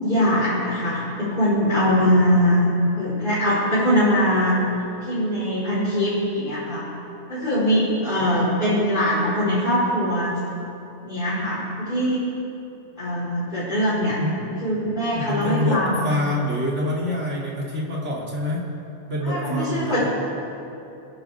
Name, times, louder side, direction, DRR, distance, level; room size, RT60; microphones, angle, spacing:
voice 1, 0.0-4.6 5.0-6.8 7.3-10.3 11.0-12.2 13.0-14.2 14.6-16.0 19.2-20.1, equal, 40° left, -12 dB, 4.8 m, -22 dB
voice 2, 14.2-14.7 15.1-18.7 19.1-20.1, left 1 dB, 60° right, -4 dB, 3.2 m, -26 dB
29.5 x 11.0 x 3.6 m, 2.9 s
omnidirectional pair, 1.4 m